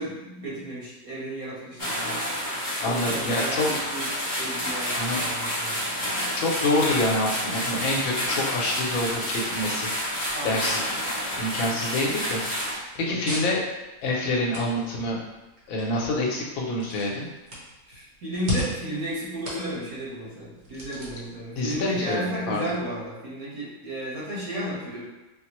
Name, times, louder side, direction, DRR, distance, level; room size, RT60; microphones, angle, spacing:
voice 1, 0.0-2.2 2.7-6.0 10.3-10.6 13.1-13.4 17.8-25.0, right 1 dB, 70° right, -8 dB, 1.6 m, -33 dB
sound 1, 1.8-12.7, equal, 20° left, 0.6 m, -29 dB
voice 2, 2.8-3.7 5.0-5.2 6.4-9.9 10.4-10.8 11.4-13.6 14.0-15.2 15.7-17.3 21.5-22.7, left 2 dB, 70° left, -2 dB, 1.1 m, -27 dB
sound 2, 6.1-23.1, equal, 55° right, 1.1 m, -41 dB
4.2 x 2.1 x 2.9 m, 1.0 s
omnidirectional pair, 1.5 m